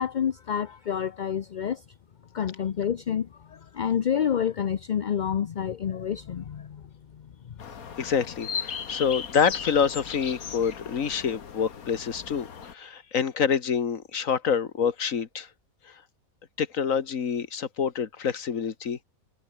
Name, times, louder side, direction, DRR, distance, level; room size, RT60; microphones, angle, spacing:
voice 1, 0.0-1.8 2.3-7.6 8.0-8.1, left 8 dB, 50° left, 0.5 m, -29 dB
sound 1, 7.6-12.7, left 7 dB, 90° left, 2.0 m, -37 dB
voice 2, 8.0-15.5 16.6-19.0, left 7 dB, 70° left, 1.8 m, -27 dB
omnidirectional pair, 1.5 m